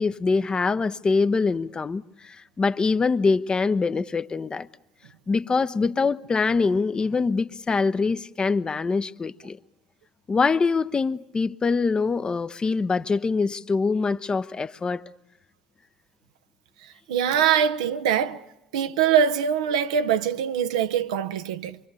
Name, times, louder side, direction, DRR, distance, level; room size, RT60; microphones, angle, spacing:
voice 1, 0.0-4.7 5.3-9.6 10.3-15.0, left 4 dB, 25° left, 0.9 m, -24 dB
voice 2, 17.1-18.4 18.7-21.8, right 8 dB, 75° right, 0.9 m, -23 dB
25.5 x 24.0 x 8.2 m
figure-of-eight pair, 60°, 3 cm